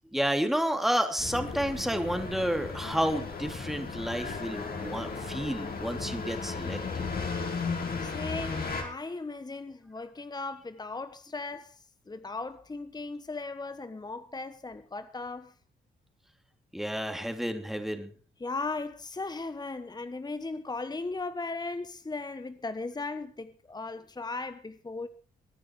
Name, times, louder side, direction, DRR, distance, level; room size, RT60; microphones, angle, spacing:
voice 1, 0.1-7.0 16.7-18.1, equal, ahead, 3.1 m, -30 dB
sound 1, 1.2-8.8, left 4 dB, 50° left, 5.3 m, -35 dB
voice 2, 8.0-11.8 12.1-15.5 18.4-25.1, left 3 dB, 20° left, 1.2 m, -37 dB
23.0 x 9.6 x 4.9 m
supercardioid pair, 65°, 20 cm